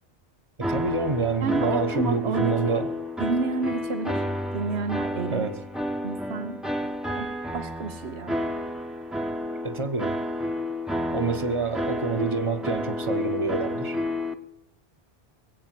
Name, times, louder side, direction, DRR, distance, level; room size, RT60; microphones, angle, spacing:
sound 1, 0.6-14.3, left 1 dB, ahead, 1.1 m, -30 dB
voice 1, 0.6-2.9 5.3-5.6 9.6-10.2 11.1-14.0, right 4 dB, 30° right, 1.2 m, -27 dB
voice 2, 1.4-2.9 3.2-4.2 4.5-5.5 6.0-6.6 7.2-8.4, right 4 dB, 75° right, 1.4 m, -30 dB
21.5 x 8.6 x 7.7 m
omnidirectional pair, 1.1 m